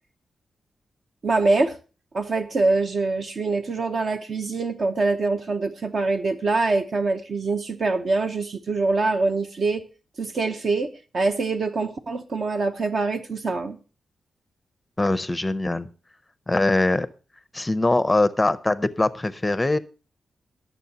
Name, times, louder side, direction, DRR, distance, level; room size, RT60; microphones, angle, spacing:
voice 1, 1.2-1.7 2.1-9.8 10.2-13.8, right 3 dB, 50° right, 7 dB, 0.8 m, -24 dB
voice 2, 15.0-15.9 16.5-17.1 17.5-19.8, left 2 dB, 15° left, 14 dB, 0.6 m, -22 dB
21.0 x 7.2 x 2.8 m, 0.34 s
wide cardioid pair, 145°, 0 cm